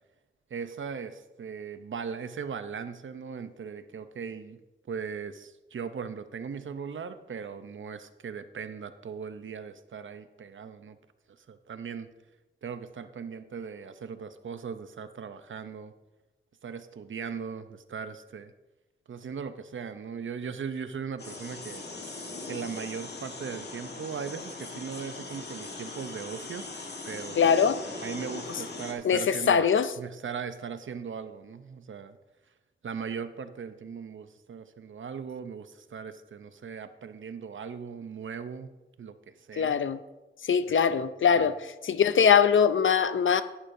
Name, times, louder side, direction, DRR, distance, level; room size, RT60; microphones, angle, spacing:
voice 1, 0.5-4.6 4.9-11.0 11.5-12.1 12.6-15.9 16.6-18.5 19.1-21.9 22.5-26.7 27.1-27.4 28.0-29.7 30.0-32.2 32.8-38.7 39.0-39.8 40.7-41.0 41.4-41.5, right 6 dB, 85° right, 0.7 m, -38 dB
sound 1, 21.2-28.9, left 3 dB, 60° left, 1.5 m, -40 dB
voice 2, 27.4-27.8 29.0-29.9 39.6-40.0 40.4-41.5 41.8-43.4, left 7 dB, 85° left, 0.5 m, -22 dB
11.0 x 10.5 x 2.7 m
wide cardioid pair, 80°, 20 cm